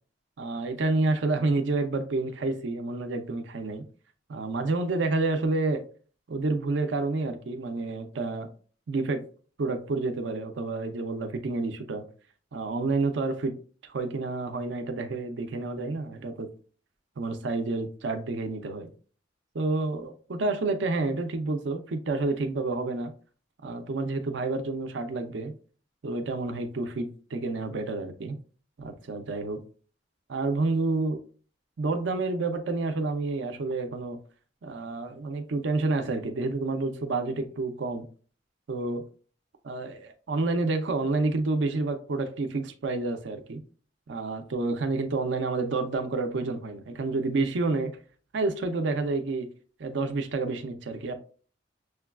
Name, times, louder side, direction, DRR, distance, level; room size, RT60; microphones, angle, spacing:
voice 1, 0.4-3.8 4.3-5.8 6.3-8.5 8.9-9.3 9.6-12.0 12.5-13.6 13.8-16.5 17.2-18.9 19.5-23.1 23.6-25.5 26.0-28.4 28.8-29.6 30.3-31.2 31.8-34.2 34.6-38.1 38.7-39.0 39.6-43.6 44.1-47.9 48.3-49.5 49.8-51.1, right 3 dB, 70° right, 0.5 m, -29 dB
6.2 x 2.2 x 2.3 m
head